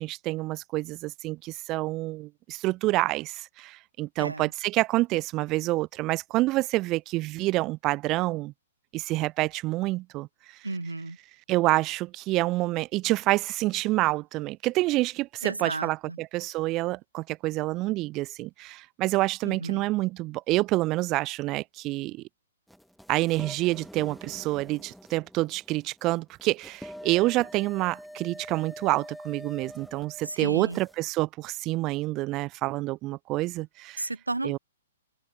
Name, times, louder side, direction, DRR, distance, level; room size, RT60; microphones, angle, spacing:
voice 1, 0.0-8.5 8.9-10.3 11.5-22.2 23.1-34.1 34.4-34.6, right 19 dB, 30° right, 1.0 m, -27 dB
voice 2, 10.6-11.2 15.4-16.2 19.4-19.9 30.2-30.8 34.0-34.6, right 2 dB, 80° right, 1.1 m, -33 dB
sound 1, 22.7-31.0, equal, ahead, 4.0 m, -45 dB
figure-of-eight pair, 115°, 0 cm